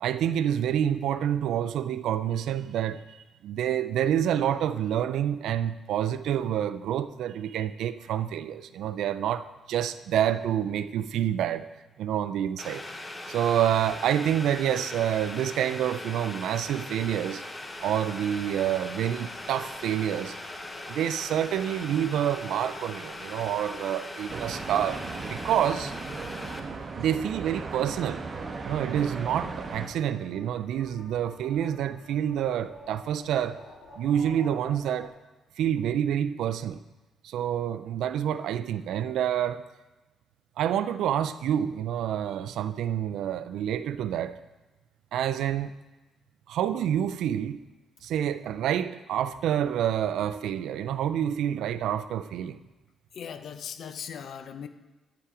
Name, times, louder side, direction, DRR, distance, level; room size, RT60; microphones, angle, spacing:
voice 1, 0.0-3.0 3.4-11.7 12.0-12.8 13.3-17.4 17.8-20.4 20.9-25.9 27.0-28.2 28.6-33.6 34.0-35.1 35.6-36.8 37.2-39.6 40.6-44.4 45.1-45.7 46.5-47.6 48.0-52.6, right 10 dB, 85° right, 0.4 m, -28 dB
Boiling, 12.6-26.6, left 2 dB, 20° left, 0.9 m, -40 dB
sound 1, 17.7-35.1, left 2 dB, 85° left, 2.0 m, -52 dB
sound 2, 24.3-29.9, right 4 dB, 40° right, 0.9 m, -37 dB
voice 2, 53.1-54.7, left 7 dB, 65° left, 0.6 m, -39 dB
10.0 x 5.7 x 4.8 m
cardioid pair, 110°, 0 cm